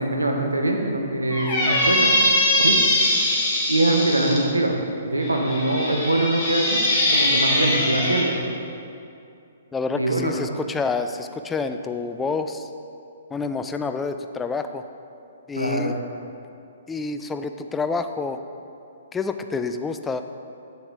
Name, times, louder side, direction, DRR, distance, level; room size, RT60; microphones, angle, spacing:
voice 1, 0.0-2.1 2.6-2.8 3.7-6.8 7.1-8.4 9.9-10.6 15.5-16.0, right 2 dB, 80° right, 2 dB, 0.9 m, -23 dB
Squeak, 1.3-4.4 5.2-8.3, left 1 dB, 30° left, 1.7 m, -21 dB
voice 2, 9.7-12.7 13.3-14.8 15.5-16.0 16.9-18.4 19.1-20.2, left 4 dB, 10° left, 8 dB, 0.3 m, -28 dB
8.0 x 7.0 x 3.5 m, 2.6 s
figure-of-eight pair, 120°, 0 cm